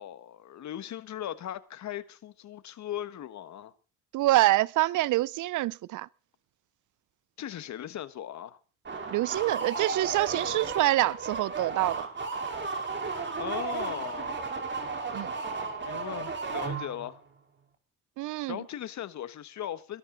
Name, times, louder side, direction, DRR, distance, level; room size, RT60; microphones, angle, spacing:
voice 1, 0.0-3.7 7.4-8.6 13.4-14.4 15.8-17.2 18.5-20.0, left 11 dB, 65° left, 1.4 m, -38 dB
voice 2, 4.1-6.1 9.1-12.1 15.1-15.3 18.2-18.6, right 17 dB, 80° right, 0.6 m, -26 dB
sound 1, 8.8-17.2, right 4 dB, 40° right, 4.3 m, -34 dB
22.0 x 13.0 x 4.0 m
cardioid pair, 90°, 30 cm